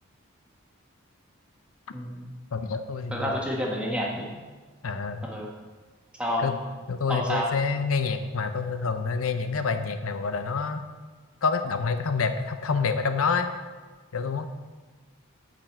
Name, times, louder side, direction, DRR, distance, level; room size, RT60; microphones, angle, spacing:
voice 1, 1.9-2.3 3.1-4.3 5.2-5.5 6.2-6.5 7.1-7.5, equal, 5° right, -3 dB, 1.5 m, -29 dB
voice 2, 2.5-3.3 4.8-5.2 6.4-6.5 6.9-10.8 11.4-13.5 14.1-14.5, left 5 dB, 80° left, 8 dB, 0.7 m, -27 dB
9.1 x 5.1 x 7.9 m, 1.4 s
head